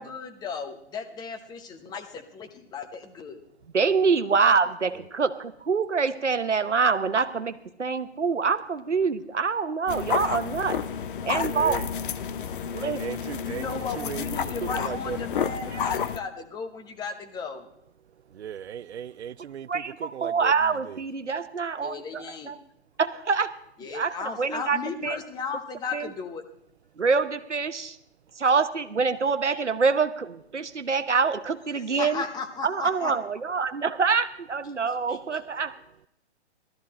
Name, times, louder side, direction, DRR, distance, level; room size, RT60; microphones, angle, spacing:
voice 1, 0.0-3.4 13.4-17.7 21.8-22.5 23.8-26.4 29.5-29.6 31.7-33.1 35.1-35.4, left 5 dB, 10° left, 1.0 m, -35 dB
voice 2, 3.7-10.8 11.3-11.8 12.7-13.2 19.7-22.6 23.0-23.6 23.9-25.2 25.9-26.1 27.0-28.0 28.4-32.2 32.6-35.7, right 5 dB, 90° right, 1.0 m, -25 dB
sound 1, 9.9-16.2, left 7 dB, 50° left, 0.7 m, -31 dB
voice 3, 11.2-11.9 12.7-14.2 14.6-15.2 18.3-20.5 20.9-21.0, right 9 dB, 70° right, 0.6 m, -37 dB
16.0 x 13.0 x 4.2 m
figure-of-eight pair, 130°, 34 cm